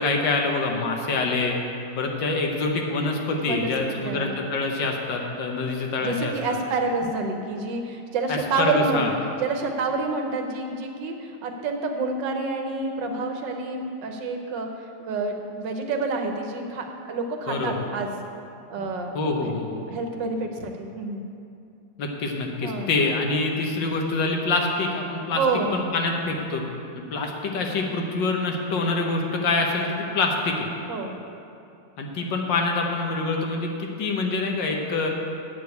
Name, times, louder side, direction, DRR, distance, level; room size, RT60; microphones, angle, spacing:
voice 1, 0.0-1.5 2.0-6.3 8.3-9.1 17.5-17.9 18.8-18.9 19.1-19.9 22.0-25.4 25.7-26.6 27.1-30.6 32.0-35.1, left 3 dB, 80° left, 1 dB, 1.8 m, -26 dB
voice 2, 4.0-4.4 6.0-14.7 15.0-18.1 18.7-19.5 19.9-21.2 22.6-22.9 25.3-25.8 30.9-31.2, right 3 dB, 80° right, 4 dB, 1.6 m, -28 dB
8.2 x 6.3 x 8.2 m, 2.6 s
omnidirectional pair, 1.9 m